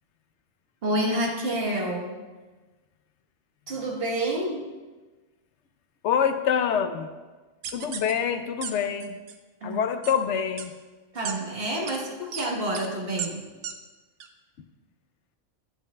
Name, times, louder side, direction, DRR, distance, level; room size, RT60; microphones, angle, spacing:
voice 1, 0.8-2.2 3.7-4.7 9.6-9.8 11.1-13.5, right 1 dB, 55° right, -1 dB, 1.4 m, -28 dB
voice 2, 6.0-7.1 7.7-9.2 9.6-10.7, left 7 dB, 75° left, 8 dB, 0.9 m, -26 dB
sound 1, 7.6-8.1 8.6-8.7 9.0-9.4 10.0-10.1 10.6-10.7 11.3-11.4 11.9-12.0 12.3-12.5 12.7-12.9 13.2-13.3 13.6-13.7 14.2-14.3, right 8 dB, 80° right, 1.0 m, -34 dB
10.5 x 9.9 x 2.2 m, 1.3 s
omnidirectional pair, 1.2 m